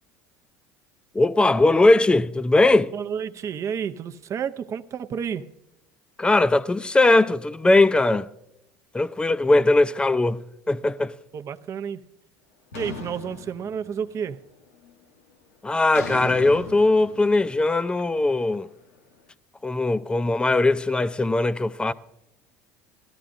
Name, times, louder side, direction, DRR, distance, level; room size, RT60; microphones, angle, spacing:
voice 1, 1.1-2.9 6.2-8.3 8.9-10.4 10.7-11.1 15.6-18.7 19.6-21.9, left 2 dB, 10° left, 0.5 m, -20 dB
voice 2, 2.9-5.5 11.3-12.0 12.7-14.4, right 7 dB, 40° right, 0.7 m, -30 dB
sound 1, 12.7-14.3 14.6-15.0 15.9-19.0, left 4 dB, 85° left, 1.1 m, -39 dB
18.5 x 13.0 x 2.6 m
hypercardioid pair, 75°, 8 cm